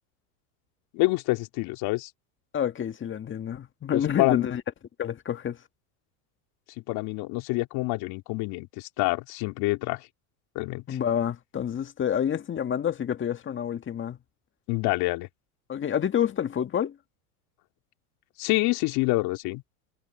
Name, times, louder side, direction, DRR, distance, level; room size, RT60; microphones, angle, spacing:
voice 1, 0.9-2.1 3.9-4.5 6.9-10.0 10.5-11.0 14.7-15.3 18.4-19.6, left 22 dB, 55° left, 3.0 m, -27 dB
voice 2, 2.5-4.6 5.0-5.6 10.9-14.2 15.7-17.0, left 9 dB, 25° left, 1.8 m, -28 dB
supercardioid pair, 115°, 45 cm